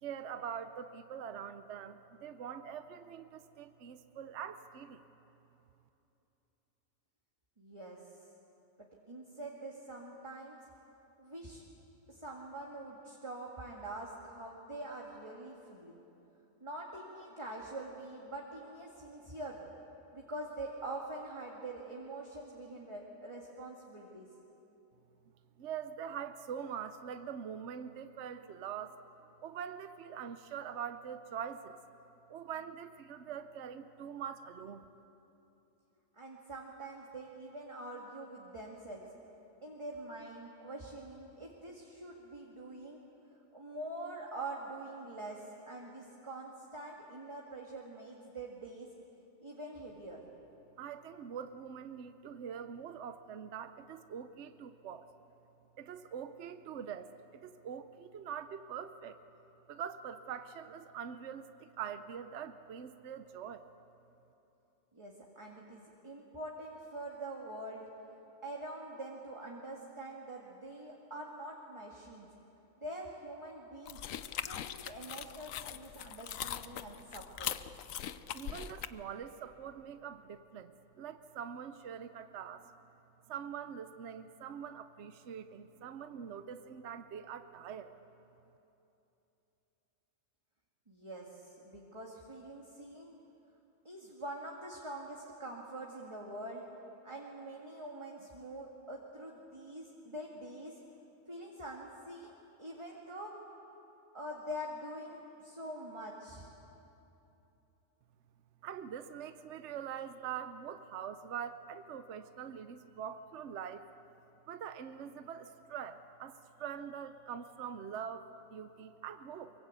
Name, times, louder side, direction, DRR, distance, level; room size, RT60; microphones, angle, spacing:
voice 1, 0.0-5.0 25.6-29.0 29.4-31.8 32.3-34.9 50.8-55.1 55.8-59.2 59.7-63.6 78.3-82.8 83.3-87.9 108.6-113.9 114.5-119.5, right 8 dB, 60° right, 10 dB, 1.0 m, -44 dB
voice 2, 7.6-8.1 8.8-10.6 11.2-11.6 12.1-16.0 16.6-19.7 20.1-24.3 36.1-39.1 39.6-43.0 43.5-48.9 49.4-50.2 64.9-67.9 68.4-72.3 72.8-74.2 74.5-77.5 90.9-93.1 93.8-96.7 97.0-100.8 101.3-103.4 104.1-106.5, right 1 dB, 20° right, -2 dB, 2.0 m, -45 dB
sound 1, 73.9-78.9, left 10 dB, 80° left, 1.1 m, -41 dB
23.5 x 23.0 x 8.3 m, 3.0 s
omnidirectional pair, 1.4 m